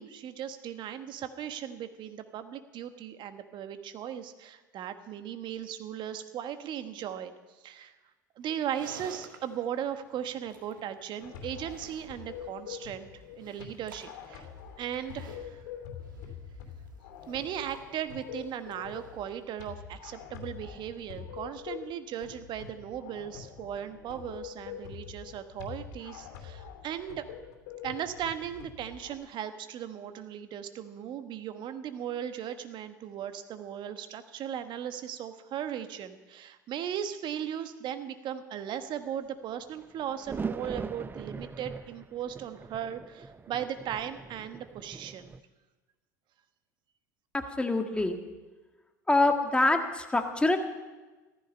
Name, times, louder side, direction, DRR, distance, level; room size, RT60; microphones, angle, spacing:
voice 1, 0.0-7.3 7.6-7.9 8.4-14.5 14.8-15.6 17.3-27.3 27.8-45.3, right 9 dB, 50° right, 9 dB, 1.3 m, -37 dB
Livestock farm animals working animals, 8.4-19.7, right 4 dB, 85° right, 1.9 m, -54 dB
sound 1, 11.2-29.1, left 8 dB, 65° left, 2.9 m, -45 dB
sound 2, 39.8-45.4, right 4 dB, 20° right, 0.7 m, -41 dB
voice 2, 47.3-48.2 49.1-50.6, left 2 dB, 10° left, 5 dB, 1.8 m, -25 dB
15.5 x 14.0 x 5.5 m, 1.2 s
hypercardioid pair, 75°, 10 cm